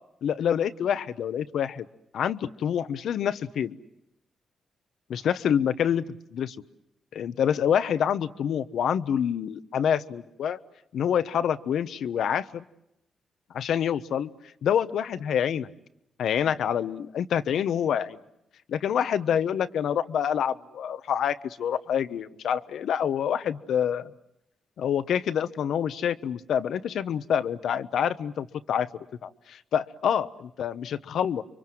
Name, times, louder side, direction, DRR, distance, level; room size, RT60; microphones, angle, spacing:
voice 1, 0.2-1.8 2.1-3.8 5.1-6.0 6.3-6.6 7.1-10.6 10.9-12.6 13.5-14.3 14.6-15.7 16.2-18.2 18.7-24.1 24.8-28.9 29.2-31.4, left 8 dB, 80° left, 13 dB, 1.0 m, -27 dB
30.0 x 24.0 x 7.7 m, 0.86 s
cardioid pair, 60°, 0 cm